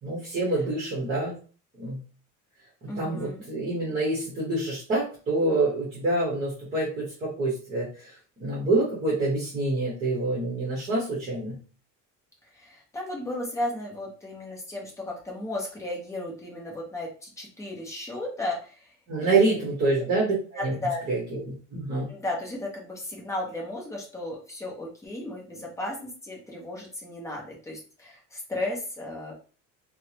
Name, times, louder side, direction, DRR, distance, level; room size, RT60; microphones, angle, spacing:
voice 1, 0.0-1.3 1.8-2.0 2.8-7.9 8.4-11.6 19.1-20.7 21.1-21.2 21.5-22.1, right 2 dB, 25° right, -6 dB, 0.9 m, -26 dB
voice 2, 2.9-3.5 12.5-18.9 19.2-19.6 20.5-21.0 22.0-29.3, left 1 dB, 10° left, -2 dB, 0.5 m, -34 dB
3.2 x 2.0 x 2.8 m, 0.39 s
cardioid pair, 180°, 32 cm